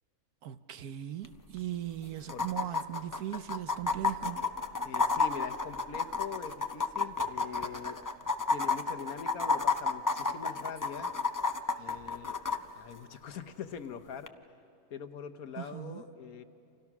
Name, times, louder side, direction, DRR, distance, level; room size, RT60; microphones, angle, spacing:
voice 1, 0.4-4.4 15.6-16.0, right 12 dB, 80° right, 1.4 m, -38 dB
sound 1, 1.2-1.3 1.6-1.7 2.3-12.6 14.3-14.4, left 4 dB, 25° left, 0.4 m, -31 dB
voice 2, 4.8-8.0 8.5-11.1 11.8-12.4 12.7-14.3 14.9-16.4, left 6 dB, 70° left, 1.5 m, -43 dB
29.5 x 27.0 x 6.0 m
omnidirectional pair, 1.6 m